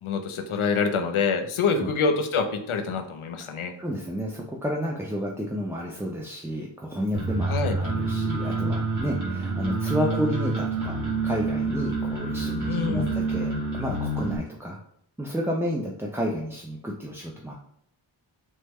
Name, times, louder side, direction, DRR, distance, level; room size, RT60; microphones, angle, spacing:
voice 1, 0.0-3.7 7.5-7.8 12.7-13.2, left 5 dB, 85° left, 7 dB, 0.5 m, -26 dB
voice 2, 3.8-14.8 15.2-17.5, equal, 5° right, -2 dB, 0.3 m, -31 dB
sound 1, 7.1-14.4, right 3 dB, 40° right, 1.2 m, -28 dB
3.2 x 2.1 x 3.4 m, 0.67 s
wide cardioid pair, 50°, 48 cm